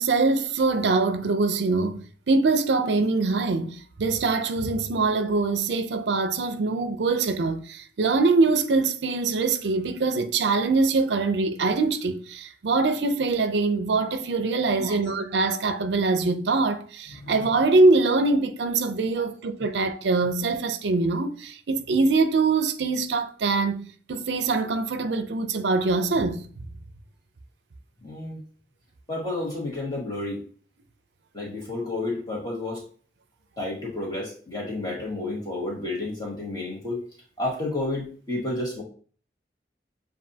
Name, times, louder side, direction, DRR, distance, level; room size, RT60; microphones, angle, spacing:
voice 1, 0.0-26.4, right 3 dB, 80° right, 0.5 m, -23 dB
voice 2, 28.0-28.4 29.1-30.4 31.3-32.8 33.6-37.0 37.4-38.8, left 2 dB, 20° left, 1.6 m, -31 dB
7.3 x 2.5 x 2.7 m
head